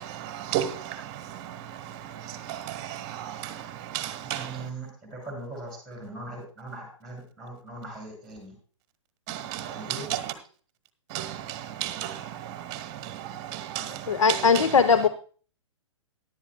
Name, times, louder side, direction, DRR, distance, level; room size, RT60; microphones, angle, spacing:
voice 1, 0.0-4.7 9.3-10.3 11.1-14.6, right 11 dB, 30° right, 1.2 m, -34 dB
voice 2, 4.3-4.9 5.2-8.5 9.6-10.1, right 2 dB, ahead, 5.8 m, -40 dB
voice 3, 14.1-15.1, left 5 dB, 75° left, 0.7 m, -20 dB
16.0 x 11.0 x 2.3 m
figure-of-eight pair, 120°, 17 cm